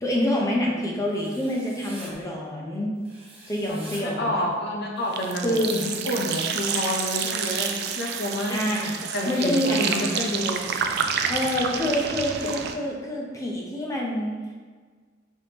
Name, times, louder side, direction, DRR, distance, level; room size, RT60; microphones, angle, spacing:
voice 1, 0.0-2.9 3.5-4.4 5.4-5.8 8.5-8.9 9.3-9.9 11.3-14.3, left 1 dB, 15° left, -2 dB, 0.7 m, -26 dB
Writing, 1.1-2.1 3.0-4.0 5.0-5.9 7.0-8.0 9.0-10.0, right 2 dB, 30° right, 0.9 m, -46 dB
voice 2, 3.6-10.6, left 1 dB, 55° left, 0 dB, 0.6 m, -29 dB
sound 1, 5.1-12.7, right 7 dB, 55° right, 0.3 m, -29 dB
4.6 x 3.5 x 2.9 m, 1.5 s
head